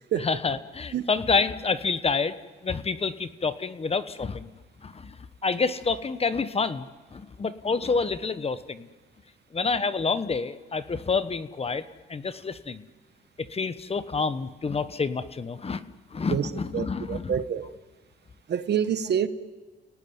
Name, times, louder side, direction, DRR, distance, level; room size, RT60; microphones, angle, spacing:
voice 1, 0.1-2.3 2.6-4.5 4.8-8.9 9.5-11.8 12.1-12.8 13.4-15.8 16.1-17.4, left 4 dB, 30° left, 12 dB, 1.2 m, -28 dB
voice 2, 16.7-17.7 18.5-19.3, right 8 dB, 60° right, 12 dB, 1.3 m, -27 dB
30.0 x 18.5 x 9.5 m, 1.4 s
cardioid pair, 90°, 20 cm